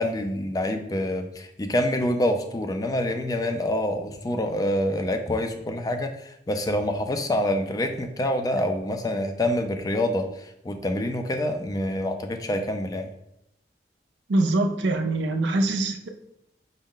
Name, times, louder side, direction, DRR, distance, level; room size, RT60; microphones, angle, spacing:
voice 1, 0.0-13.1, left 1 dB, 20° left, 6 dB, 0.3 m, -26 dB
voice 2, 14.3-16.1, right 2 dB, 80° right, 6 dB, 0.5 m, -23 dB
5.2 x 2.1 x 3.7 m, 0.80 s
head